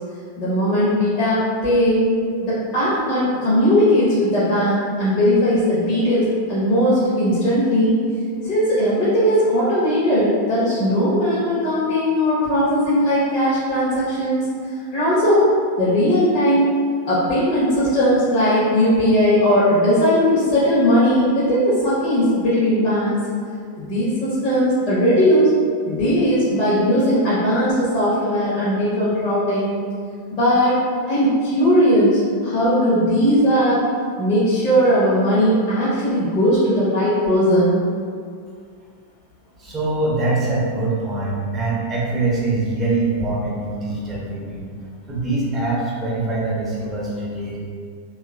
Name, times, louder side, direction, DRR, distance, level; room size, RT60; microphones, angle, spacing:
voice 1, 0.4-2.1 2.4-7.9 8.4-14.5 14.9-15.5 15.8-16.8 17.1-23.2 23.8-25.5 25.8-29.7 30.3-30.8 31.1-33.8 34.2-37.8, equal, 40° left, -11 dB, 0.9 m, -18 dB
voice 2, 39.6-44.7 45.1-47.6, right 2 dB, 20° right, -5 dB, 0.7 m, -23 dB
3.2 x 2.3 x 2.3 m, 2.1 s
figure-of-eight pair, 90°, 0 cm